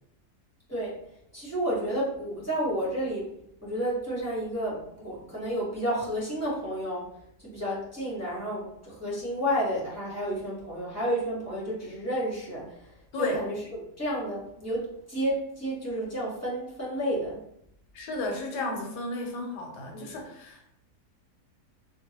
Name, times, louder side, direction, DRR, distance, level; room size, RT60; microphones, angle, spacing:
voice 1, 1.3-3.3 3.6-7.1 7.4-12.9 13.2-13.6 14.0-17.4 19.9-20.2, equal, 15° left, -8 dB, 0.6 m, -31 dB
voice 2, 17.9-20.7, left 2 dB, 75° left, 1 dB, 1.2 m, -33 dB
2.9 x 2.2 x 2.8 m, 0.73 s
omnidirectional pair, 1.8 m